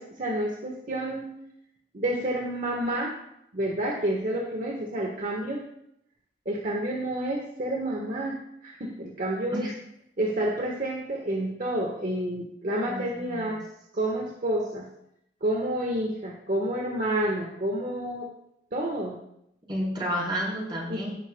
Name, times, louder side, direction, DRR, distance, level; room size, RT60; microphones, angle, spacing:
voice 1, 0.0-1.3 1.9-3.1 3.5-5.6 6.4-9.6 10.2-13.6 13.9-14.9 15.4-18.3 18.7-19.2 20.9-21.1, right 1 dB, 50° right, -1 dB, 1.3 m, -29 dB
voice 2, 12.8-13.6 19.7-21.1, equal, 25° right, -6 dB, 4.1 m, -31 dB
17.5 x 8.5 x 2.3 m, 0.75 s
head